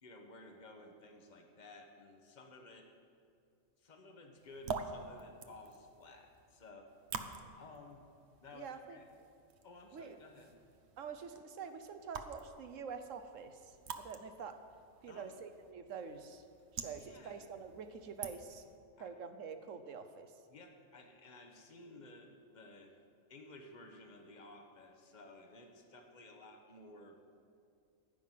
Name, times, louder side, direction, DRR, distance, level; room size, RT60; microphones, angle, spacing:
voice 1, 0.0-2.9 3.8-6.9 7.2-8.0 8.4-9.1 9.6-10.6 15.1-15.3 17.0-17.4 19.0-19.1 20.5-23.0 23.3-27.2, left 2 dB, 35° left, 3 dB, 1.3 m, -55 dB
sound 1, 4.4-18.8, right 5 dB, 60° right, 1.0 m, -48 dB
voice 2, 8.5-9.0 9.9-10.2 11.0-14.6 15.0-16.4 16.7-18.6 19.0-20.3, right 6 dB, 80° right, 9 dB, 1.3 m, -46 dB
15.5 x 5.7 x 9.3 m, 2.4 s
omnidirectional pair, 1.3 m